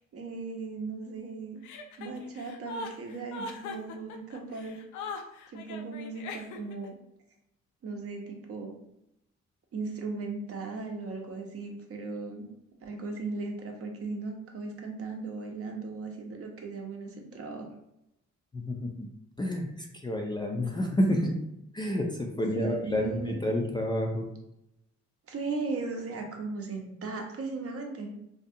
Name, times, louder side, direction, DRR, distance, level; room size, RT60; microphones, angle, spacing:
voice 1, 0.0-1.6 2.0-4.8 5.5-6.9 7.8-8.7 9.7-12.5 12.8-17.7 22.5-23.4 25.3-28.1, right 3 dB, 50° right, 2 dB, 0.6 m, -37 dB
Chuckle chortle, 1.6-6.9, left 3 dB, 75° left, 0.5 m, -40 dB
voice 2, 18.5-19.1 19.4-19.7 20.0-21.3 21.7-24.3, left 1 dB, 15° left, 1 dB, 0.4 m, -29 dB
2.5 x 2.3 x 2.6 m, 0.82 s
cardioid pair, 90°, 30 cm